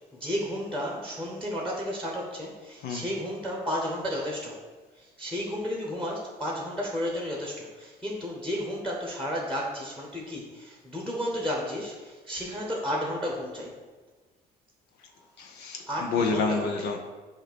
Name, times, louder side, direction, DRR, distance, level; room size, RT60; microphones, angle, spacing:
voice 1, 0.1-4.6 5.0-13.8 15.9-16.9, equal, 5° left, -1 dB, 1.2 m, -32 dB
voice 2, 15.4-17.0, left 4 dB, 80° left, 2 dB, 0.9 m, -28 dB
7.9 x 2.8 x 6.1 m, 1.3 s
cardioid pair, 110°, 17 cm